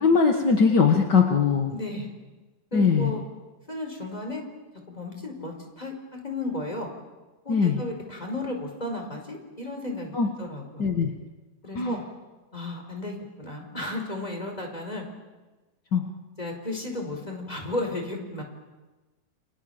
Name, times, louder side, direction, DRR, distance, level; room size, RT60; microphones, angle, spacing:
voice 1, 0.0-1.7 2.7-3.1 7.5-7.8 10.1-10.3 10.8-11.1 11.7-12.0 15.9-16.0, left 5 dB, 45° left, 3 dB, 1.5 m, -21 dB
voice 2, 1.7-2.1 2.7-3.2 3.7-4.4 4.9-6.9 7.4-10.9 11.6-12.0 12.5-15.0 16.4-18.4, left 2 dB, 10° left, 2 dB, 4.7 m, -34 dB
29.5 x 26.0 x 7.2 m, 1.2 s
omnidirectional pair, 4.1 m